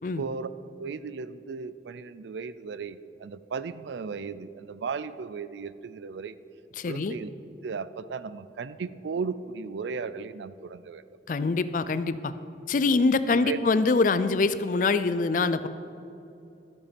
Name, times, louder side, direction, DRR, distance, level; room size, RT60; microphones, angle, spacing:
voice 1, 0.2-0.5 0.8-6.4 6.9-7.3 7.6-11.0 13.3-13.6, right 5 dB, 80° right, 15 dB, 0.4 m, -35 dB
voice 2, 6.8-7.2 11.3-12.3 12.7-15.7, left 3 dB, 45° left, 13 dB, 0.4 m, -24 dB
13.0 x 7.0 x 5.2 m, 2.7 s
head